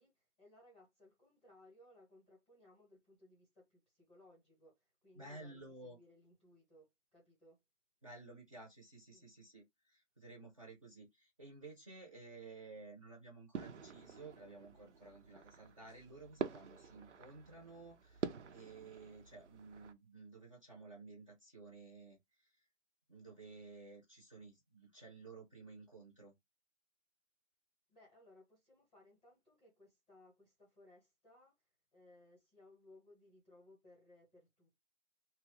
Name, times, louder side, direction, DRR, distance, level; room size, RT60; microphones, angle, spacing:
voice 1, 0.0-7.6 9.1-9.3 27.9-34.8, left 1 dB, 5° left, 0.9 m, -64 dB
voice 2, 5.2-6.0 8.0-22.6 23.1-26.3, right 3 dB, 25° right, 0.7 m, -54 dB
sound 1, 13.5-19.9, right 6 dB, 65° right, 0.6 m, -47 dB
2.8 x 2.3 x 3.0 m
hypercardioid pair, 170°, 37 cm